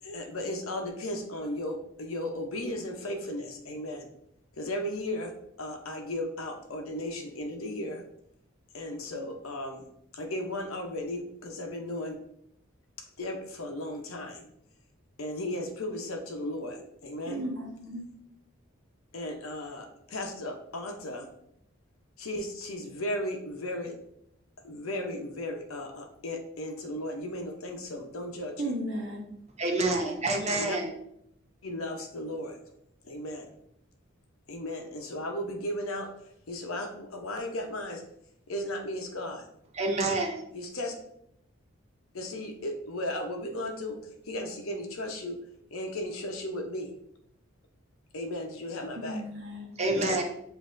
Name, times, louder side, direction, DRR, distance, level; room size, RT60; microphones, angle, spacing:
voice 1, 0.0-4.1 4.5-5.3 5.6-8.0 8.7-9.8 10.1-12.2 13.2-14.5 15.2-17.4 19.1-21.3 22.2-24.0 24.6-28.7 30.6-30.8 31.6-32.6 33.0-33.5 34.5-36.1 36.5-38.0 38.5-39.5 40.5-40.9 42.1-44.0 44.2-45.4 45.7-46.9 48.1-49.2 49.8-50.2, left 1 dB, 80° left, 4 dB, 0.8 m, -35 dB
voice 2, 17.3-18.1 28.6-29.2 49.0-49.7, right 1 dB, 55° right, -1 dB, 1.0 m, -35 dB
voice 3, 29.6-30.9 39.7-40.4 49.8-50.2, right 2 dB, 30° right, 1 dB, 0.6 m, -27 dB
7.3 x 2.7 x 2.6 m, 0.74 s
head